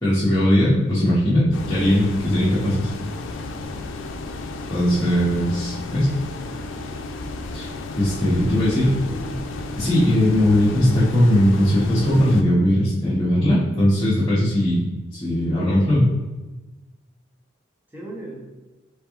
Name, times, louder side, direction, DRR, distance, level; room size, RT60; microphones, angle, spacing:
voice 1, 0.0-2.9 4.7-6.1 7.5-7.7 8.0-9.0 9.8-14.8 15.1-16.1, left 1 dB, 20° left, -11 dB, 1.0 m, -19 dB
sound 1, 1.5-12.4, left 2 dB, 80° left, 0.4 m, -33 dB
voice 2, 8.2-9.3 17.9-18.4, right 1 dB, 10° right, -3 dB, 0.8 m, -39 dB
4.3 x 3.4 x 3.5 m, 1.1 s
head